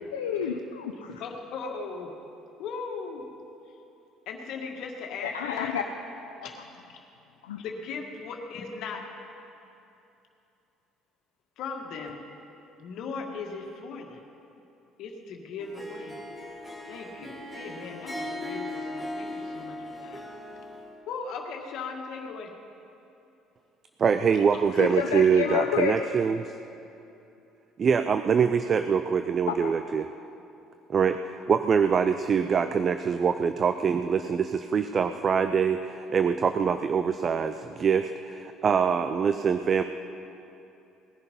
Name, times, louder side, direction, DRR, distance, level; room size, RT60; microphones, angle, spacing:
voice 1, 0.1-1.2 5.2-5.8 6.4-6.5 7.4-7.6 24.8-25.9 29.5-29.7, left 8 dB, 85° left, 3 dB, 0.6 m, -29 dB
voice 2, 1.2-2.1 2.6-3.2 4.3-5.7 6.4-6.7 7.6-9.1 11.6-12.2 12.8-14.2 15.0-16.2 16.9-20.2 21.1-22.5 24.5-24.8, left 4 dB, 65° left, 2 dB, 1.9 m, -38 dB
Harp, 15.6-20.9, left 1 dB, 5° right, 2.6 m, -38 dB
voice 3, 24.0-26.5 27.8-30.1 30.9-39.8, right 6 dB, 45° right, 10 dB, 0.6 m, -24 dB
19.5 x 10.5 x 5.4 m, 2.8 s
hypercardioid pair, 60°, 0 cm